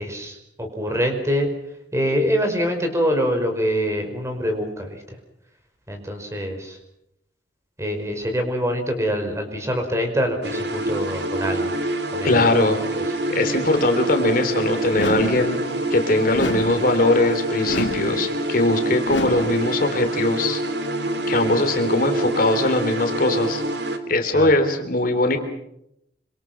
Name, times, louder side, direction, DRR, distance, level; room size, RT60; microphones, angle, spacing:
voice 1, 0.0-1.5 1.9-5.0 5.9-6.8 7.8-11.7 12.1-12.4 24.3-24.5, equal, 15° right, 5 dB, 5.1 m, -24 dB
sound 1, 10.4-24.0, right 1 dB, 65° right, 3.0 m, -26 dB
voice 2, 12.2-12.8 13.3-15.6 15.9-20.6 21.3-23.6 24.1-25.4, left 2 dB, 50° left, 6 dB, 3.2 m, -20 dB
sound 2, 14.9-15.5 16.3-16.9 17.7-18.2 19.1-19.6, left 2 dB, 80° left, 2.5 m, -28 dB
27.0 x 26.0 x 6.1 m, 0.80 s
head